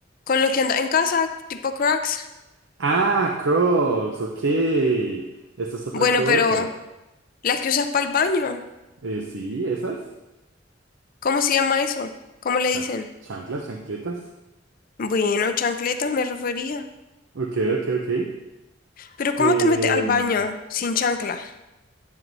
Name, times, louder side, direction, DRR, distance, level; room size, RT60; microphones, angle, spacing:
voice 1, 0.3-2.3 5.9-6.7 7.4-8.6 11.2-12.1 12.4-13.1 15.0-16.9 19.0-21.5, left 5 dB, 45° left, 8 dB, 0.4 m, -23 dB
voice 2, 2.8-5.3 5.6-6.7 9.0-10.0 12.7-12.8 13.2-14.2 17.3-18.3 19.4-20.4, right 3 dB, 75° right, 2 dB, 0.6 m, -24 dB
10.5 x 7.6 x 2.6 m, 0.99 s
head